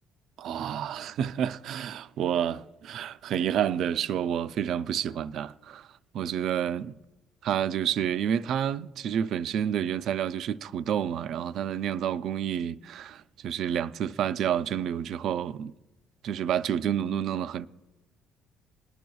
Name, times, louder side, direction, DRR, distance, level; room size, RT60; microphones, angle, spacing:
voice 1, 0.4-5.9 6.1-6.9 7.4-15.7 16.2-17.7, right 9 dB, 50° right, 0.3 m, -29 dB
20.5 x 10.5 x 2.3 m
cardioid pair, 170°, 0 cm